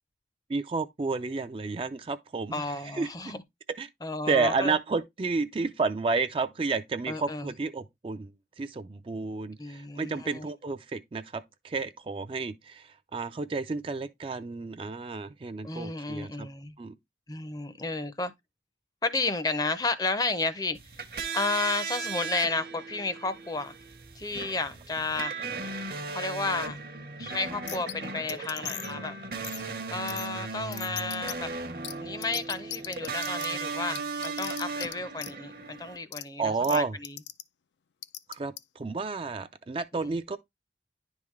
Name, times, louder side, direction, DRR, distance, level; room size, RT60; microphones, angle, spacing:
voice 1, 0.5-3.3 3.8-3.9 4.3-8.3 8.6-16.5 16.8-17.0 36.4-37.0 38.3-40.4, right 4 dB, 30° right, 0.3 m, -31 dB
voice 2, 2.5-3.4 4.0-4.7 7.1-7.5 9.6-10.4 15.6-16.7 17.3-18.3 19.0-20.8 21.3-23.7 24.2-25.3 26.1-26.8 27.2-29.1 29.9-31.5 32.0-37.2, left 3 dB, 20° left, 0.5 m, -32 dB
test electure, 20.8-36.0, right 4 dB, 55° right, 0.9 m, -37 dB
sound 1, 27.7-27.9 28.3-28.9 29.4-29.6 30.1-30.3 30.7-31.3 31.8-31.9 32.2-33.5 33.9-34.9 35.2-35.3 36.1-36.2 36.6-36.8 37.0-37.4 38.0-38.6, left 13 dB, 85° left, 0.4 m, -37 dB
10.5 x 3.6 x 3.1 m
head